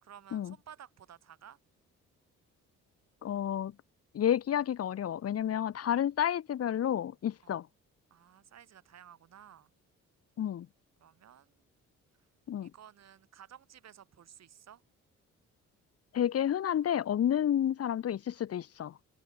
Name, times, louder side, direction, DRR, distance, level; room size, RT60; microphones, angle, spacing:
voice 1, 0.0-1.6 7.4-7.5 8.1-9.7 11.0-11.6 12.6-14.8, right 9 dB, 60° right, 3.5 m, -54 dB
voice 2, 3.2-3.7 4.1-7.7 10.4-10.7 12.5-12.7 16.1-18.9, left 10 dB, 50° left, 1.1 m, -30 dB
open air
cardioid pair, 90°, 30 cm